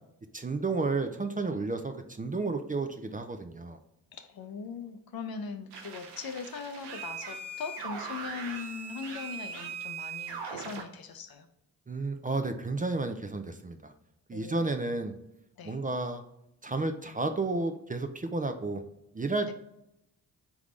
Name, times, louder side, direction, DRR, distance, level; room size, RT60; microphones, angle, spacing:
voice 1, 0.3-3.8 11.9-13.9 14.3-15.2 15.6-16.2 16.6-18.8 19.1-19.5, right 3 dB, 20° right, 7 dB, 0.5 m, -32 dB
voice 2, 4.1-11.5 14.3-14.8 15.6-15.8 19.5-19.6, left 5 dB, 60° left, 8 dB, 0.7 m, -40 dB
sound 1, 5.7-10.8, right 5 dB, 85° right, 0.8 m, -40 dB
3.7 x 3.5 x 3.2 m, 0.85 s
supercardioid pair, 50°, 40 cm